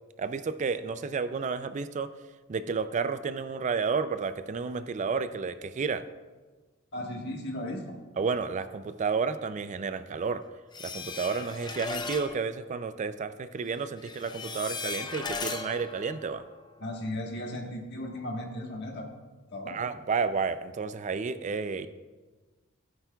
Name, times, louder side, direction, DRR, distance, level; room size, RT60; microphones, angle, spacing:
voice 1, 0.2-2.1 2.5-6.0 8.2-10.4 10.8-16.4 19.7-21.9, right 5 dB, 35° right, 12 dB, 0.4 m, -31 dB
voice 2, 6.9-8.0 16.8-19.1 19.5-19.8, left 1 dB, 60° left, 2 dB, 1.4 m, -36 dB
sound 1, 10.7-12.4 14.0-16.9, left 4 dB, 20° left, 0.6 m, -37 dB
15.5 x 8.9 x 2.3 m, 1.3 s
head